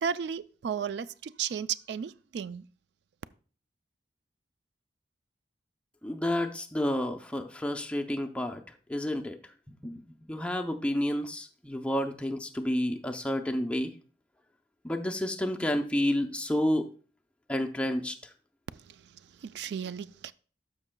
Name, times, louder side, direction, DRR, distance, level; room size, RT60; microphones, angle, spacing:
voice 1, 0.0-2.7 18.9-19.0 19.4-20.3, right 7 dB, 70° right, 0.3 m, -34 dB
voice 2, 6.0-8.6 8.9-9.4 9.8-10.0 10.3-13.9 14.8-16.9 17.5-18.3, left 1 dB, 5° left, 0.6 m, -30 dB
12.5 x 5.9 x 2.2 m
head